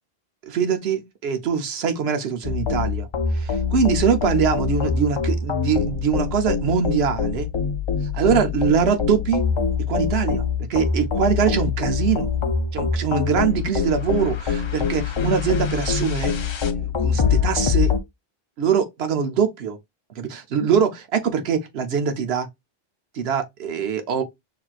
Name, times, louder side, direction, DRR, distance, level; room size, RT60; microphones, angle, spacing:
voice 1, 0.4-3.1 3.3-7.5 8.1-9.4 9.9-10.4 10.7-12.3 12.7-16.4 16.8-17.9 18.6-19.8 20.2-22.5 23.1-24.2, right 7 dB, 80° right, 1.0 m, -23 dB
sound 1, 2.4-18.0, left 6 dB, 50° left, 0.3 m, -24 dB
5.9 x 2.7 x 2.4 m
omnidirectional pair, 1.0 m